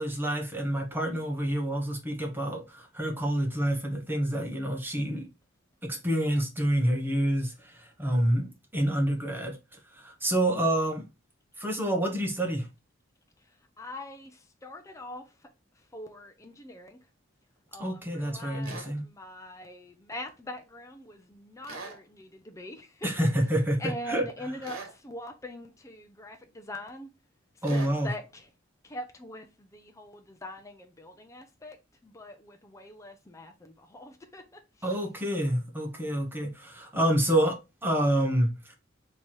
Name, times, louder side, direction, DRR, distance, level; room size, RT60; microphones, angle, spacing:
voice 1, 0.0-5.3 5.8-8.5 8.7-9.5 9.9-11.0 11.6-12.7 17.8-19.0 23.0-24.3 27.6-28.1 34.8-37.5 37.8-38.8, right 1 dB, 10° right, 1.1 m, -28 dB
voice 2, 13.8-15.3 15.9-17.0 17.7-23.3 23.8-27.1 27.7-28.5 28.8-31.8 32.0-34.6, left 1 dB, 15° left, 0.6 m, -42 dB
sound 1, 18.6-18.9 21.6-22.0 24.6-25.0 27.6-28.0, right 3 dB, 90° right, 1.2 m, -41 dB
3.4 x 3.0 x 4.4 m
head